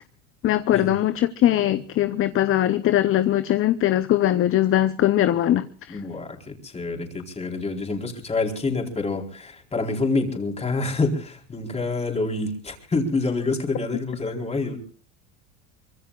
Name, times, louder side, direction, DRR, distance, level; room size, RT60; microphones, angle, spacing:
voice 1, 0.4-6.0, left 12 dB, 35° left, 12 dB, 0.9 m, -21 dB
voice 2, 5.9-14.8, left 3 dB, 20° left, 2 dB, 4.3 m, -27 dB
24.5 x 23.0 x 2.5 m, 0.39 s
supercardioid pair, 125°, 35 cm